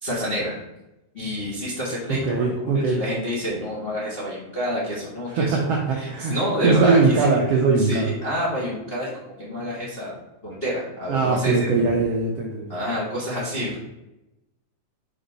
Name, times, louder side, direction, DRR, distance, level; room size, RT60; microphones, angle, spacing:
voice 1, 0.0-0.6 1.1-7.4 7.8-10.1 10.4-11.8 12.7-13.8, equal, 45° left, -7 dB, 0.7 m, -28 dB
voice 2, 2.2-3.0 5.3-6.3 6.6-8.1 11.1-12.7, right 4 dB, 70° right, -1 dB, 1.5 m, -21 dB
5.1 x 3.6 x 5.3 m, 0.93 s
omnidirectional pair, 3.5 m